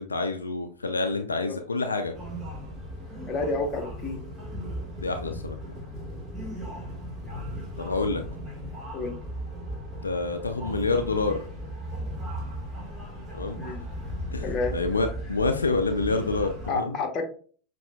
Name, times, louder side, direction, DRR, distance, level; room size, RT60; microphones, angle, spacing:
voice 1, 0.0-2.1 5.0-5.6 7.8-8.2 10.0-11.4 13.3-13.7 14.3-14.5 14.7-17.0, left 3 dB, 80° left, 0.3 m, -27 dB
sound 1, 2.1-16.7, equal, 15° right, 1.5 m, -37 dB
voice 2, 3.3-4.2 6.4-6.7 8.9-9.2 13.6-13.8 14.4-14.8 16.7-17.2, left 3 dB, 30° left, 0.9 m, -30 dB
5.5 x 2.6 x 2.2 m
figure-of-eight pair, 90°, 0 cm